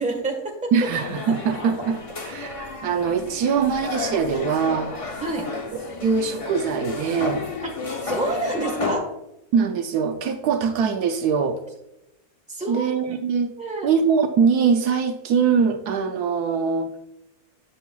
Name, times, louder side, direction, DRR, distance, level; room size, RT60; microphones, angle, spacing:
voice 1, 0.0-0.7 5.2-5.5 8.0-9.1 12.5-12.9 13.6-13.9, right 2 dB, 5° right, 1 dB, 1.2 m, -27 dB
voice 2, 0.7-4.9 5.5-5.6 6.0-7.4 9.5-11.6 12.7-13.5 13.8-17.0, right 6 dB, 75° right, 6 dB, 1.1 m, -22 dB
sound 1, 0.9-9.0, left 3 dB, 50° left, 0.4 m, -32 dB
8.4 x 6.8 x 2.3 m, 0.87 s
omnidirectional pair, 1.7 m